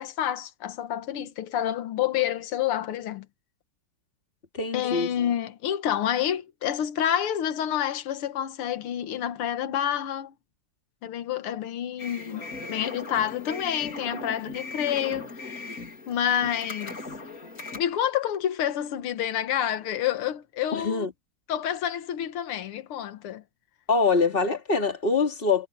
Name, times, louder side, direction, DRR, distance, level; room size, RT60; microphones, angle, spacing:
voice 1, 0.0-3.3 4.7-10.3 11.0-15.8 16.1-17.0 17.7-21.1 21.5-23.4, left 10 dB, 80° left, 2.1 m, -28 dB
voice 2, 4.5-5.1 20.7-21.1 23.9-25.7, left 4 dB, 25° left, 2.7 m, -24 dB
sound 1, 12.0-17.8, left 3 dB, 40° left, 3.5 m, -38 dB
omnidirectional pair, 2.4 m